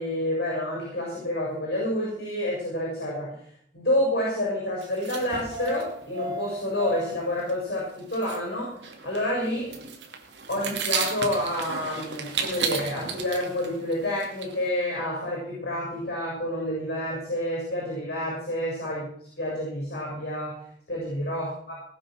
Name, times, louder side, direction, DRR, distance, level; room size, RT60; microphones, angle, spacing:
voice 1, 0.0-3.3 3.7-8.7 9.0-9.7 10.5-19.1 19.4-20.5 20.9-21.7, left 1 dB, 60° left, -4 dB, 7.2 m, -28 dB
sound 1, 4.8-7.2 7.5-7.6 7.8-7.9 8.1-8.4 8.7-14.7, right 5 dB, 75° right, 2.5 m, -34 dB
19.5 x 7.7 x 6.5 m, 0.66 s
head